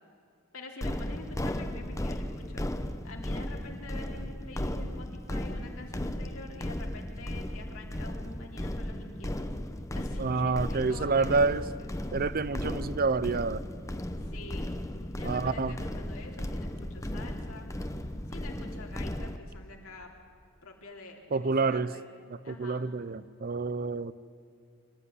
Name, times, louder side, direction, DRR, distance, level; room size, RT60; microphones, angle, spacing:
voice 1, 0.5-2.6 3.0-9.5 9.9-11.9 14.2-14.7 15.1-17.7 18.3-20.1 20.6-22.0 22.4-22.8, left 2 dB, 75° left, 0 dB, 3.6 m, -47 dB
sound 1, 0.8-19.4, left 1 dB, 15° left, 1.0 m, -35 dB
voice 2, 10.2-11.6 12.1-13.6 15.2-15.8 21.3-21.9 22.3-24.1, right 4 dB, 45° right, 16 dB, 0.7 m, -28 dB
25.0 x 14.5 x 9.7 m, 2.4 s
head